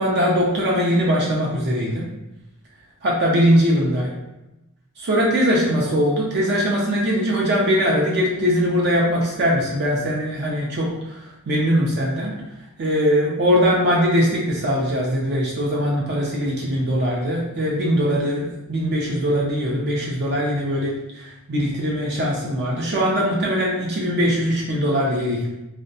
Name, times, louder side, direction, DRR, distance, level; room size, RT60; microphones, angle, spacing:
voice 1, 0.0-2.0 3.0-4.1 5.0-10.9 11.5-12.3 12.8-25.5, equal, 50° right, -3 dB, 0.4 m, -21 dB
2.5 x 2.1 x 2.6 m, 0.96 s
head